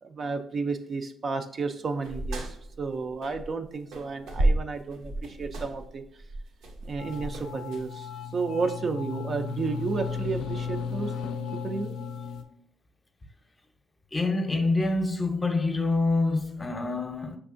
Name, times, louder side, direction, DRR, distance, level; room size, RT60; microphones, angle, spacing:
voice 1, 0.0-6.0 6.8-11.1 11.5-11.9, right 4 dB, 45° right, 0.4 m, -32 dB
sound 1, 2.0-3.6 3.9-7.9, right 1 dB, 90° right, 0.7 m, -31 dB
sound 2, 7.0-12.4, left 6 dB, 85° left, 0.4 m, -35 dB
voice 2, 14.1-17.4, left 3 dB, 25° left, 0.6 m, -26 dB
5.2 x 3.4 x 2.5 m
cardioid pair, 90°, 0 cm